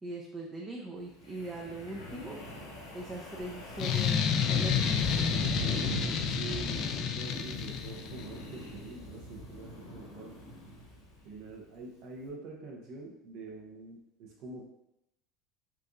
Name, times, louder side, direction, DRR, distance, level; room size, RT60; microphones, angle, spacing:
voice 1, 0.0-5.0, right 2 dB, 20° right, -2 dB, 0.5 m, -41 dB
Wind, 1.2-11.5, equal, 80° left, 1.1 m, -40 dB
sound 1, 3.8-8.3, left 7 dB, 55° left, 0.3 m, -30 dB
voice 2, 6.3-10.4 11.2-14.7, right 3 dB, 65° right, -1 dB, 0.9 m, -45 dB
4.4 x 2.6 x 2.4 m, 0.84 s
supercardioid pair, 100°, 0 cm